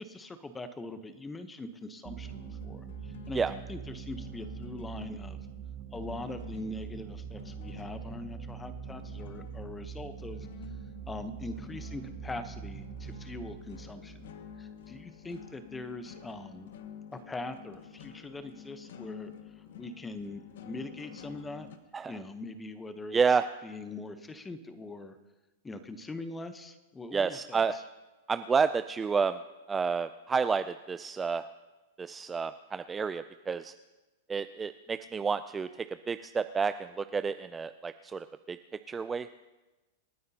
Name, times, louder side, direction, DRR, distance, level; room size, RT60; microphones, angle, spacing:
voice 1, 0.0-5.4 5.9-10.5 11.1-14.2 14.6-16.7 17.3-19.3 19.8-21.7 22.1-25.2 25.6-27.8, left 2 dB, 10° left, 10 dB, 0.9 m, -42 dB
sound 1, 2.0-15.3, right 8 dB, 35° right, 1.4 m, -43 dB
sound 2, 2.2-21.8, left 7 dB, 75° left, 1.0 m, -50 dB
voice 2, 23.1-23.5 27.1-27.8 28.3-29.4 29.7-31.4 32.0-33.7 34.3-38.6 38.9-39.3, right 5 dB, 15° right, 11 dB, 0.3 m, -30 dB
27.5 x 9.4 x 2.8 m, 1.1 s
hypercardioid pair, 135°, 0 cm